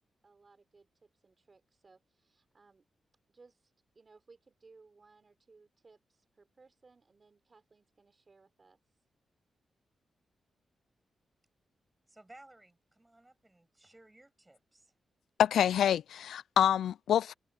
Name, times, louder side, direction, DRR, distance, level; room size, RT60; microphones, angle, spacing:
voice 1, 0.2-2.8 3.3-8.8, right 4 dB, 30° right, 3.7 m, -62 dB
voice 2, 12.1-14.9, right 1 dB, 10° right, 7.7 m, -58 dB
voice 3, 15.4-17.3, left 10 dB, 90° left, 0.3 m, -26 dB
wide cardioid pair, 125°, 0 cm